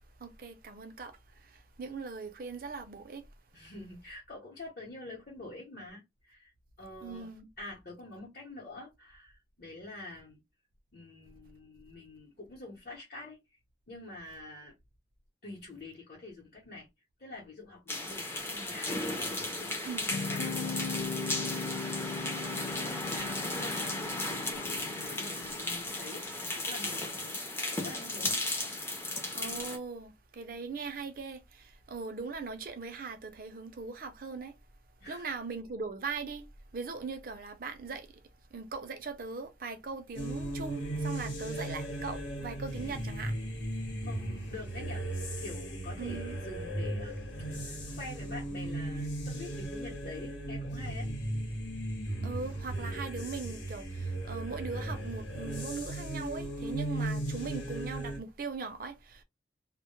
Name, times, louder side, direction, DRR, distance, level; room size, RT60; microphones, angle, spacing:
voice 1, 0.2-3.3 7.0-7.5 19.8-20.1 29.3-34.5 35.1-36.5 36.7-38.2 38.5-43.4 46.0-46.4 52.2-59.2, right 4 dB, 50° right, 0.5 m, -40 dB
voice 2, 3.5-6.5 6.8-7.3 7.6-10.4 10.9-13.4 13.9-14.7 15.4-16.9 17.2-19.8 20.3-21.7 22.5-27.4 27.7-28.4 35.0-35.2 44.1-45.0 45.4-51.1, left 2 dB, 50° left, 0.8 m, -47 dB
sound 1, 17.9-29.8, left 2 dB, 15° left, 0.5 m, -35 dB
sound 2, 20.1-25.6, left 4 dB, 70° left, 0.4 m, -38 dB
sound 3, 40.1-58.2, right 1 dB, 90° left, 0.9 m, -36 dB
2.1 x 2.0 x 2.9 m
head